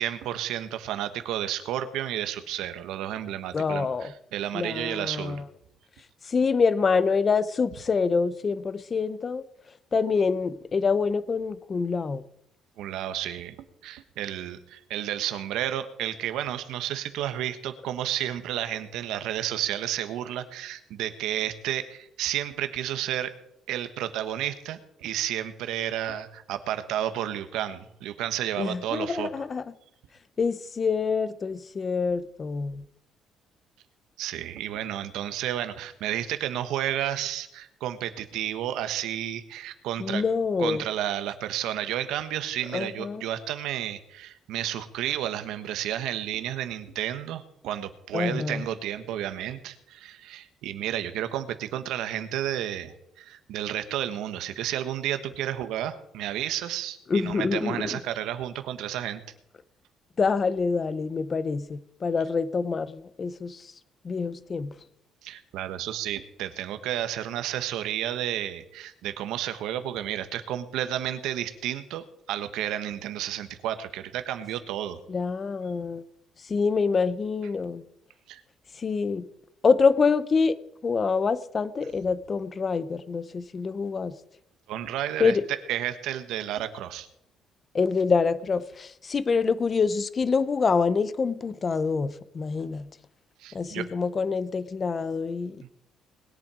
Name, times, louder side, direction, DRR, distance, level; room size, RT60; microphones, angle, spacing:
voice 1, 0.0-5.4 12.8-13.5 13.8-23.3 23.7-29.3 34.2-40.2 40.6-59.2 65.2-75.0 78.3-78.4 84.7-87.1 93.4-93.9, right 11 dB, 90° right, 1.4 m, -31 dB
voice 2, 3.5-4.1 4.5-5.4 6.2-9.4 9.9-12.2 28.6-29.6 30.4-32.8 40.0-40.8 42.7-43.2 48.1-48.6 57.1-58.0 60.2-63.7 64.0-64.7 75.1-76.0 76.5-77.8 78.8-79.2 79.6-80.6 80.8-84.1 85.2-85.4 87.7-92.9 93.5-95.7, left 5 dB, 25° left, 0.6 m, -26 dB
20.5 x 10.5 x 5.0 m
cardioid pair, 175°, 0 cm